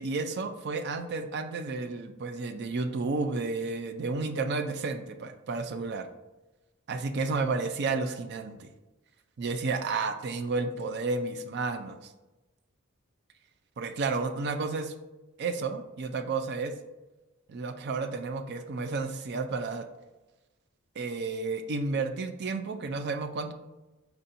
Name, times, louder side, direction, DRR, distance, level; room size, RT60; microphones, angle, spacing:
voice 1, 0.0-6.1 6.9-8.7 9.4-12.0 13.8-14.9 15.4-16.7 17.5-19.9 21.0-23.5, right 3 dB, 55° right, 8 dB, 0.4 m, -31 dB
4.5 x 4.1 x 2.6 m, 1.1 s
head